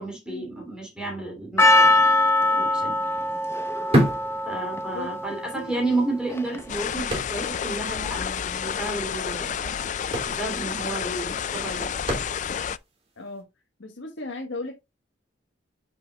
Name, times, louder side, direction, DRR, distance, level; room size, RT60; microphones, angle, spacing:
voice 1, 0.0-2.1 2.5-2.9 4.4-9.7 10.2-11.9, right 2 dB, 5° right, 2.9 m, -31 dB
Percussion, 1.6-6.8, left 2 dB, 15° left, 0.8 m, -22 dB
sound 1, 2.1-2.3 2.5-5.2 5.5-5.6 6.2-7.7 8.0-8.1 8.4-8.6 9.5-9.6 9.9-12.8 13.3-13.4, equal, 35° right, 3.1 m, -28 dB
voice 2, 4.9-5.9 13.2-13.4 13.8-14.8, left 2 dB, 85° left, 1.4 m, -36 dB
sound 2, 6.7-12.8, left 8 dB, 40° left, 0.3 m, -30 dB
9.2 x 6.1 x 2.4 m
head